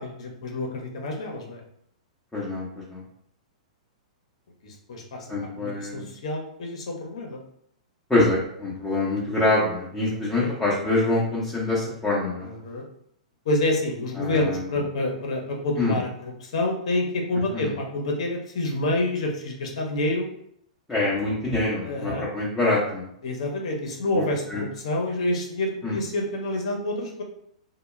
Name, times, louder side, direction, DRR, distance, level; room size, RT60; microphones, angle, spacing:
voice 1, 0.0-1.6 4.6-5.3 5.6-7.4 10.4-10.5 12.4-12.8 13.4-20.3 21.8-22.3 23.2-27.2, left 2 dB, 55° left, 1 dB, 0.7 m, -28 dB
voice 2, 2.3-3.0 5.3-6.1 8.1-12.5 14.2-14.6 15.8-16.0 17.5-17.7 20.9-23.0 24.1-24.6 25.8-25.9, left 2 dB, 5° left, -9 dB, 0.7 m, -25 dB
2.2 x 2.1 x 3.1 m, 0.70 s
figure-of-eight pair, 105°, 4 cm